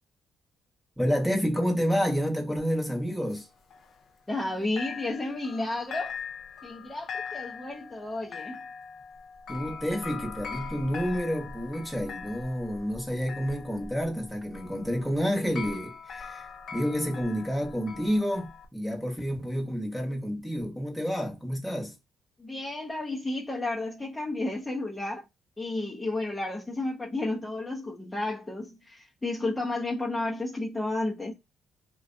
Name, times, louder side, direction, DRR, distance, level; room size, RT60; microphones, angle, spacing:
voice 1, 1.0-3.5 9.5-16.4 16.7-21.9, equal, ahead, 0.9 m, -29 dB
sound 1, 2.6-4.5 4.8-18.7, left 5 dB, 65° left, 0.5 m, -42 dB
voice 2, 4.3-6.1 6.6-8.6 22.4-25.2 25.6-31.3, left 2 dB, 15° left, 0.5 m, -32 dB
2.4 x 2.2 x 2.5 m
cardioid pair, 90°, 0 cm